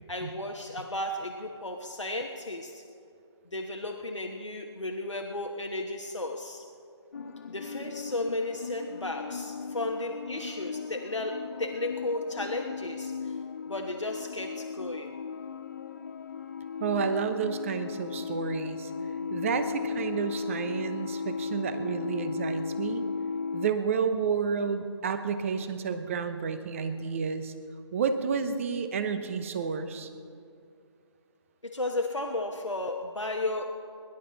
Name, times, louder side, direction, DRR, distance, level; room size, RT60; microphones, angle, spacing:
voice 1, 0.1-2.8 3.5-6.7 7.5-13.4 13.7-15.2 31.6-33.6, left 2 dB, 90° left, 2 dB, 1.3 m, -34 dB
sound 1, 7.1-23.7, left 6 dB, 40° left, 0.5 m, -36 dB
voice 2, 16.8-18.9 19.3-23.0 23.5-27.5 27.9-30.1, right 6 dB, 30° right, 10 dB, 0.9 m, -30 dB
23.5 x 11.0 x 4.0 m, 2.5 s
figure-of-eight pair, 150°, 15 cm